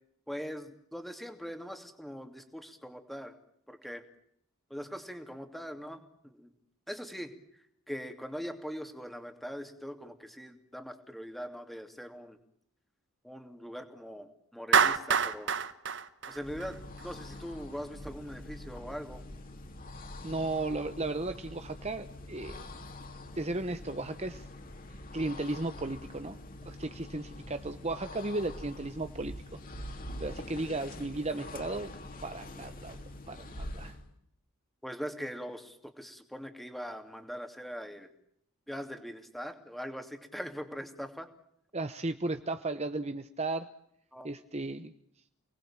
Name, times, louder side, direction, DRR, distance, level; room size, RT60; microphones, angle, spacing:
voice 1, 0.3-3.3 3.7-4.0 4.7-6.5 6.9-7.3 7.9-12.4 13.2-15.5 16.3-16.8 17.0-19.2 34.8-38.1 38.7-41.3 44.1-44.3, equal, ahead, 7 dB, 2.8 m, -41 dB
Clapping, 14.7-17.0, right 6 dB, 55° right, 1.5 m, -26 dB
sound 1, 16.3-34.1, left 1 dB, 40° left, 3.5 m, -45 dB
voice 2, 20.2-22.6 23.4-24.5 25.1-29.6 30.2-31.9 32.2-33.0 33.3-34.0 41.7-43.7 44.2-44.9, right 2 dB, 30° right, 9 dB, 1.0 m, -35 dB
29.5 x 20.0 x 8.9 m, 0.72 s
head